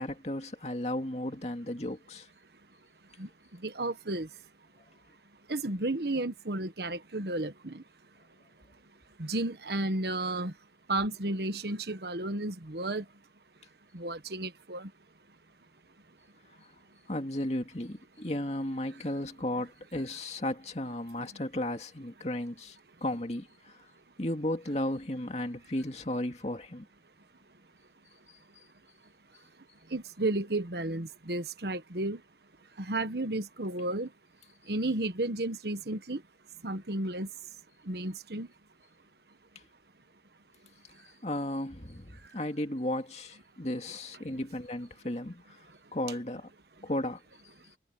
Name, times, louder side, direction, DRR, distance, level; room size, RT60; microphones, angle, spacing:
voice 1, 0.0-2.3 17.1-23.7 24.2-26.9 41.2-45.6 45.9-46.5 46.8-47.2, left 1 dB, 40° left, 2.3 m, -34 dB
voice 2, 3.6-4.3 5.5-7.8 9.2-10.5 10.9-13.0 13.9-14.9 29.9-32.2 32.8-34.1 34.7-36.2 36.6-37.3 37.9-38.5, right 2 dB, 65° right, 1.4 m, -32 dB
head